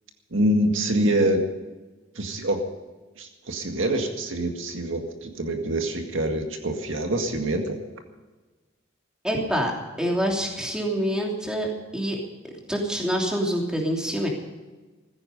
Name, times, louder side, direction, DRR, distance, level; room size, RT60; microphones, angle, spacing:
voice 1, 0.3-1.5 2.2-2.6 3.2-7.8, right 1 dB, 75° right, 4 dB, 2.0 m, -25 dB
voice 2, 9.2-9.7 10.0-12.2 12.7-14.3, equal, 5° right, -1 dB, 3.0 m, -26 dB
15.5 x 15.0 x 5.3 m, 1.2 s
head